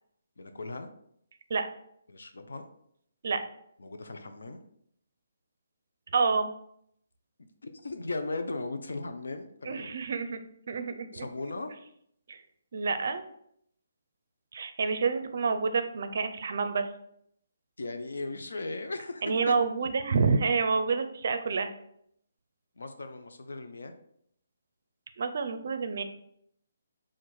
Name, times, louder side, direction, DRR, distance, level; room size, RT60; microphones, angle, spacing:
voice 1, 0.4-0.9 2.1-2.6 3.8-4.6 7.4-7.5 7.8-9.9 11.1-11.7 17.8-19.6 22.8-23.9, left 3 dB, 75° left, 7 dB, 0.5 m, -37 dB
voice 2, 6.1-6.5 9.7-10.4 10.7-11.3 12.3-12.4 12.7-13.3 14.5-16.9 19.2-21.7 25.2-26.0, right 4 dB, 60° right, 9 dB, 0.4 m, -28 dB
4.5 x 2.5 x 4.2 m, 0.71 s
figure-of-eight pair, 145°, 0 cm